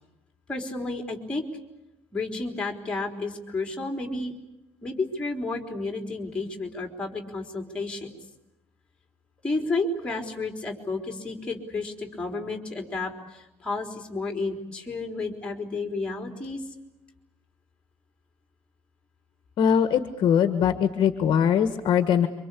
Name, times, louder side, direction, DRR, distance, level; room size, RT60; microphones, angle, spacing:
voice 1, 0.5-1.5 2.1-4.3 4.8-8.1 9.4-16.6, left 3 dB, 10° left, 3 dB, 3.9 m, -31 dB
voice 2, 19.6-22.3, left 8 dB, 45° left, 9 dB, 1.5 m, -21 dB
27.5 x 25.0 x 8.5 m, 0.92 s
cardioid pair, 180°, 12 cm